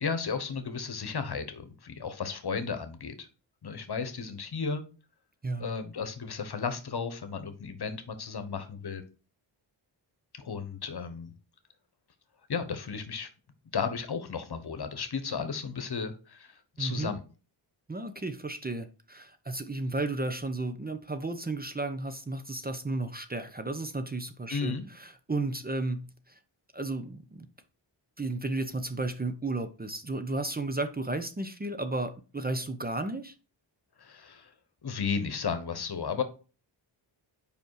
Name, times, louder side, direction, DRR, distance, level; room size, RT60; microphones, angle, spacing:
voice 1, 0.0-3.3 3.6-4.8 5.6-9.0 10.3-11.3 12.5-13.3 13.7-17.2 24.5-24.8 34.0-34.5 34.8-36.2, left 5 dB, 55° left, 1.1 m, -34 dB
voice 2, 16.8-17.1 17.9-26.4 26.7-27.5 28.2-33.3, right 2 dB, 20° right, 0.7 m, -33 dB
5.3 x 5.1 x 4.7 m
wide cardioid pair, 75°, 45 cm